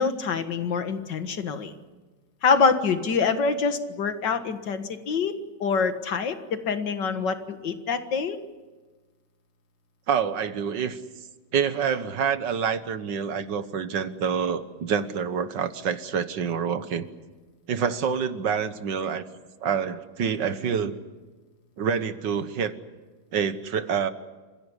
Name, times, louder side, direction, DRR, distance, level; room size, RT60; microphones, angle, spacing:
voice 1, 0.0-1.7 2.4-5.4 5.6-8.4, left 5 dB, 60° left, 8 dB, 2.3 m, -25 dB
voice 2, 10.1-11.0 11.5-17.1 17.7-19.2 19.6-20.9 21.8-22.7 23.3-24.1, right 7 dB, 65° right, 11 dB, 1.8 m, -27 dB
28.5 x 15.5 x 10.0 m, 1.3 s
omnidirectional pair, 2.2 m